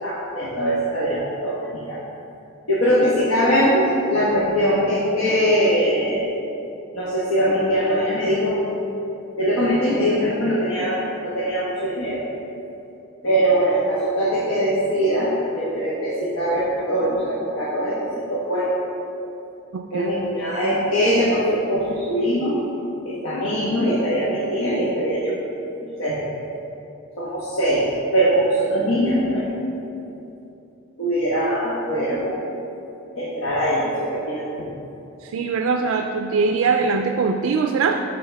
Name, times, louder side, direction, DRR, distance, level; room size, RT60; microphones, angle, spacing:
voice 1, 0.0-2.0 2.7-6.2 6.9-8.6 9.4-11.0 11.2-12.2 13.2-18.7 19.9-22.5 23.0-25.4 25.8-26.2 27.2-27.9 28.1-29.5 31.0-32.4 33.2-34.7, equal, 75° left, -8 dB, 1.2 m, -21 dB
voice 2, 19.7-20.1 35.2-38.0, right 4 dB, 75° right, 5 dB, 0.3 m, -22 dB
12.0 x 4.0 x 3.4 m, 2.9 s
head